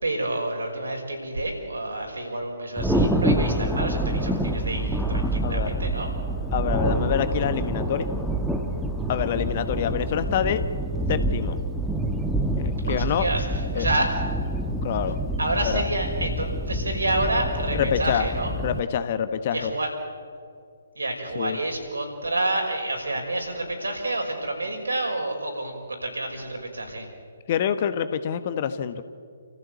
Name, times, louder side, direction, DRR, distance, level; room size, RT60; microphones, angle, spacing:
voice 1, 0.0-6.1 12.8-14.1 15.4-18.5 19.5-19.9 20.9-27.1, right 2 dB, 75° right, 2 dB, 5.8 m, -29 dB
Thunder, 2.8-18.8, right 1 dB, ahead, 1.3 m, -27 dB
voice 2, 5.4-5.7 6.5-8.1 9.1-10.6 11.1-11.6 12.6-13.3 13.7-13.9 14.8-15.2 15.6-15.8 17.7-18.3 18.6-19.7 21.3-21.6 27.5-29.0, left 8 dB, 35° left, 10 dB, 1.3 m, -26 dB
29.0 x 15.0 x 8.4 m, 2.2 s
figure-of-eight pair, 135°, 0 cm